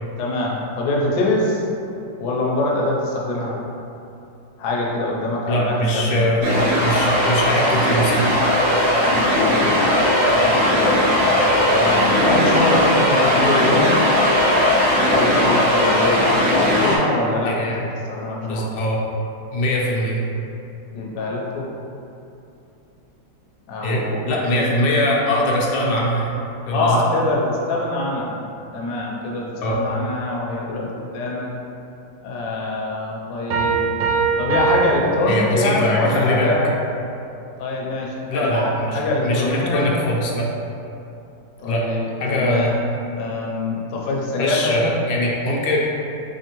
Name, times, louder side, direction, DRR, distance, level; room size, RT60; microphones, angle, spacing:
voice 1, 0.2-1.6 2.2-3.6 4.6-6.7 9.0-10.0 10.3-11.1 11.7-14.0 15.0-17.8 18.1-18.7 20.9-21.7 23.7-24.2 24.5-24.7 26.7-28.4 28.7-31.5 32.2-33.8 34.4-36.7 37.6-39.9 41.6-42.0 42.3-42.8 43.2-45.0, left 2 dB, 70° left, -3 dB, 1.1 m, -24 dB
voice 2, 5.5-8.3 17.4-17.8 18.4-19.0 19.5-20.2 23.8-26.3 26.7-27.0 29.6-29.9 35.3-36.6 38.3-40.5 41.7-41.8 42.2-42.9 44.4-45.9, equal, 85° left, -3 dB, 1.4 m, -22 dB
sound 1, 6.4-17.0, left 1 dB, 50° right, 1.0 m, -17 dB
Piano, 33.5-36.0, right 5 dB, 80° right, 1.3 m, -22 dB
3.5 x 3.4 x 2.9 m, 2.7 s
omnidirectional pair, 2.1 m